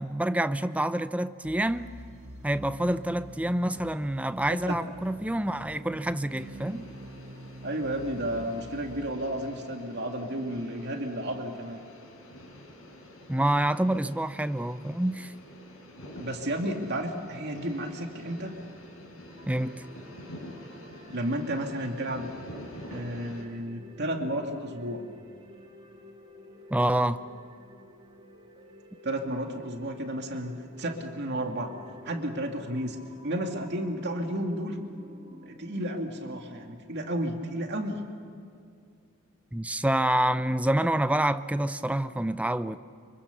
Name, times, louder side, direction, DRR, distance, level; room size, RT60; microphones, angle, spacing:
voice 1, 0.0-1.9 2.4-6.9 13.3-15.3 19.5-19.8 26.7-27.2 39.5-42.8, right 1 dB, 5° right, 0.6 m, -27 dB
sound 1, 1.4-9.1, right 1 dB, 80° right, 1.9 m, -46 dB
sound 2, 6.3-23.5, left 1 dB, 90° left, 5.3 m, -47 dB
voice 2, 7.6-11.8 16.2-18.5 21.1-22.3 22.9-25.0 29.0-31.7 32.0-33.0 33.2-34.8 35.4-38.0, right 1 dB, 55° right, 2.3 m, -32 dB
sound 3, 19.3-36.8, left 1 dB, 25° right, 2.2 m, -51 dB
25.5 x 24.0 x 6.9 m
head